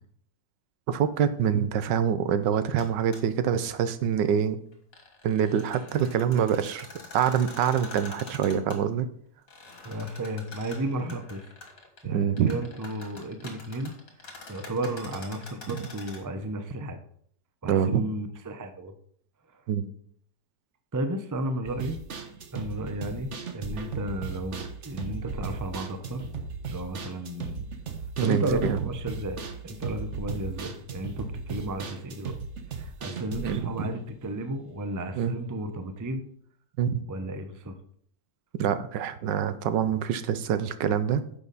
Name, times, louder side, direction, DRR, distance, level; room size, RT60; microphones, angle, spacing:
voice 1, 0.9-4.6 5.2-6.9 7.1-9.1 12.0-12.6 15.7-15.8 17.6-18.0 19.7-19.8 28.2-28.8 33.4-33.9 35.1-35.3 36.8-37.0 38.6-41.2, right 8 dB, 90° right, 12 dB, 1.4 m, -25 dB
sound 1, 2.8-2.9 3.1-3.2 4.7-8.8 9.5-12.0 12.3-16.2, left 3 dB, 55° left, 2.5 m, -45 dB
voice 2, 9.8-11.5 12.0-13.9 14.5-17.0 17.6-18.9 19.5-19.6 20.9-22.0 22.5-26.2 26.7-27.7 28.2-32.3 32.7-36.2 37.1-37.8, right 1 dB, 25° right, 8 dB, 0.4 m, -33 dB
sound 2, 21.6-34.9 35.1-35.2 35.6-35.7, right 5 dB, 45° right, 1.2 m, -37 dB
10.5 x 7.0 x 4.1 m, 0.63 s
omnidirectional pair, 1.9 m